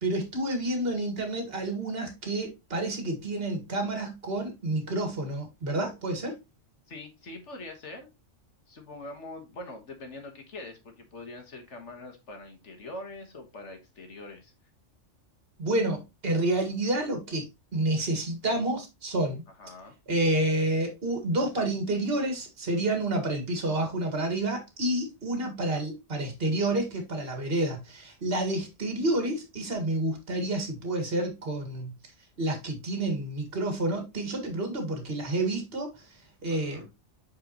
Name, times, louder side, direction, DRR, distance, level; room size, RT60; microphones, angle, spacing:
voice 1, 0.0-6.3 15.6-17.4 17.7-19.4 20.1-31.9 32.4-36.1 36.4-36.9, right 1 dB, 50° right, 2.0 m, -29 dB
voice 2, 6.9-8.1 8.7-14.5 19.6-20.0 25.4-25.8 36.5-36.9, left 2 dB, 65° left, 1.8 m, -43 dB
7.7 x 4.6 x 2.9 m
omnidirectional pair, 1.3 m